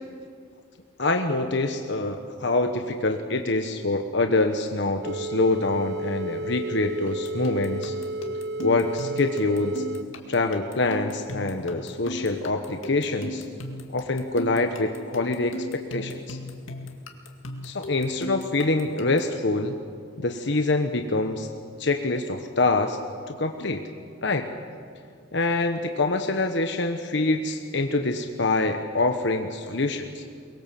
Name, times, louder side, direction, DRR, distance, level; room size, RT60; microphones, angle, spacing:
voice 1, 1.0-7.9 8.6-9.8 10.3-13.4 13.9-15.7 15.9-16.4 17.6-19.8 20.2-21.5 21.8-23.0 23.3-23.8 24.2-24.5 25.3-30.2, left 2 dB, 60° left, 5 dB, 1.1 m, -25 dB
sound 1, 5.0-10.0, right 2 dB, 55° right, 0.6 m, -32 dB
sound 2, 7.1-19.4, left 1 dB, 75° left, 2.1 m, -38 dB
23.5 x 21.0 x 7.6 m, 2.3 s
head